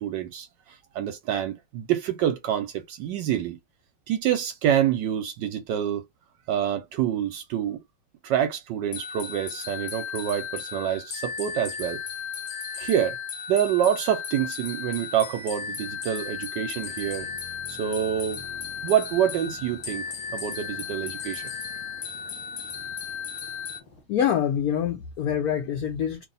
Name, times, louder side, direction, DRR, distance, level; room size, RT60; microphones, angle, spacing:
voice 1, 0.0-3.6 4.1-6.0 6.5-7.8 8.2-12.0 12.8-13.2 13.5-17.3 17.7-18.4 18.8-20.0 20.3-21.4, right 10 dB, 75° right, 1.1 m, -27 dB
sound 1, 8.9-23.8, left 6 dB, 50° left, 1.0 m, -35 dB
sound 2, 14.8-24.0, left 2 dB, 25° left, 0.9 m, -51 dB
voice 2, 24.1-26.2, left 9 dB, 80° left, 0.8 m, -25 dB
3.0 x 2.6 x 4.0 m
omnidirectional pair, 2.2 m